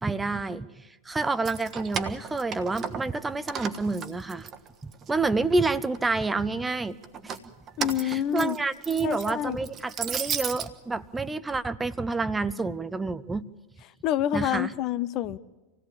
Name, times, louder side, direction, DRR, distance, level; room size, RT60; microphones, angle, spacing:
voice 1, 0.0-0.7 1.0-4.5 4.8-7.0 7.2-7.4 8.0-13.4 14.3-14.7, right 3 dB, 10° right, 16 dB, 0.8 m, -28 dB
Keys jangling, 1.3-3.2 3.5-5.1 5.5-6.3 7.0-10.7, right 7 dB, 30° right, 1.3 m, -35 dB
voice 2, 7.8-8.6 9.0-9.6 14.0-15.4, left 11 dB, 40° left, 15 dB, 0.7 m, -27 dB
26.0 x 17.5 x 8.7 m, 1.2 s
figure-of-eight pair, 90°, 0 cm